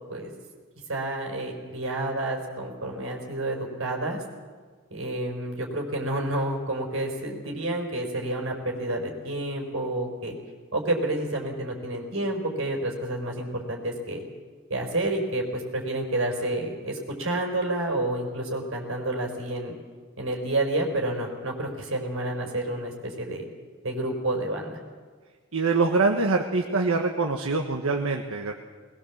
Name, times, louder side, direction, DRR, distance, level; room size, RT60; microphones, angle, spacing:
voice 1, 0.9-4.2 4.9-10.3 10.7-14.2 14.7-19.7 20.2-23.4 23.8-24.8, right 1 dB, 70° right, 1 dB, 4.6 m, -29 dB
voice 2, 25.5-28.5, right 3 dB, 85° right, 2 dB, 1.4 m, -24 dB
20.5 x 20.5 x 7.4 m, 1.5 s
head